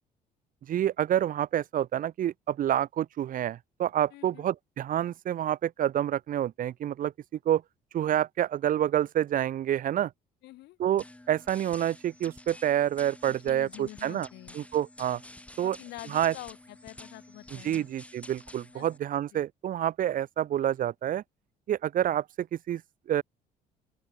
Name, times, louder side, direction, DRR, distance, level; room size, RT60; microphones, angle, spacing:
voice 1, 0.7-7.1 7.4-7.6 7.9-10.1 10.8-14.3 14.5-15.2 15.6-15.8 16.1-16.3 17.5-21.2 21.7-22.8 23.1-23.2, right 11 dB, 55° right, 1.0 m, -28 dB
voice 2, 4.1-4.5 10.4-10.8 13.3-14.6 15.6-17.9 18.7-18.9 19.3-19.4, left 17 dB, 85° left, 7.9 m, -46 dB
sound 1, 11.0-19.0, left 1 dB, 5° left, 2.7 m, -49 dB
open air
cardioid pair, 110°, 17 cm